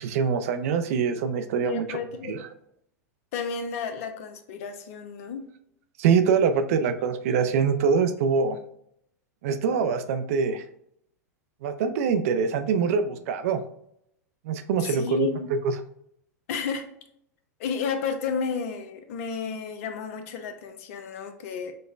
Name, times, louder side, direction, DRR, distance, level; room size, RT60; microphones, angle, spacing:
voice 1, 0.0-2.0 2.3-2.4 6.0-8.6 9.4-10.6 11.6-13.6 14.4-15.7, right 6 dB, 60° right, 9 dB, 0.4 m, -24 dB
voice 2, 1.6-2.4 3.3-5.5 14.8-15.5 16.5-16.9 17.6-21.7, left 6 dB, 60° left, 6 dB, 0.6 m, -32 dB
5.2 x 2.1 x 2.4 m, 0.72 s
hypercardioid pair, 100°, 9 cm